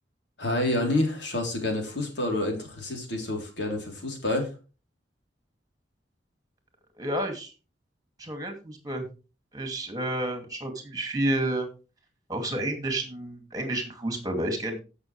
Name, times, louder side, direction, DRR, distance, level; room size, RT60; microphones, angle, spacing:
voice 1, 0.4-4.5, left 1 dB, 75° left, 2 dB, 3.5 m, -28 dB
voice 2, 7.0-7.5 8.2-9.1 9.5-11.7 12.3-14.8, right 1 dB, 20° right, 5 dB, 2.4 m, -30 dB
15.5 x 6.4 x 3.3 m, 0.32 s
head